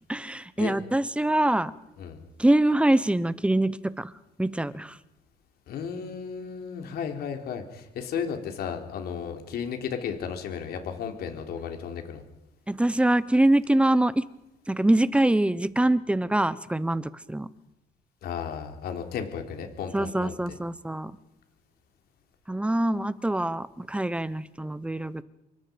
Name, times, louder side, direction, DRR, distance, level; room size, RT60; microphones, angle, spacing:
voice 1, 0.1-1.7 2.4-4.1 4.4-5.0 12.7-14.2 14.7-17.5 19.9-21.2 22.5-25.2, right 1 dB, 5° right, 16 dB, 1.0 m, -24 dB
voice 2, 5.7-12.2 18.2-20.4, left 7 dB, 70° left, 5 dB, 3.6 m, -34 dB
27.5 x 24.5 x 5.3 m, 0.89 s
cardioid pair, 110°, 17 cm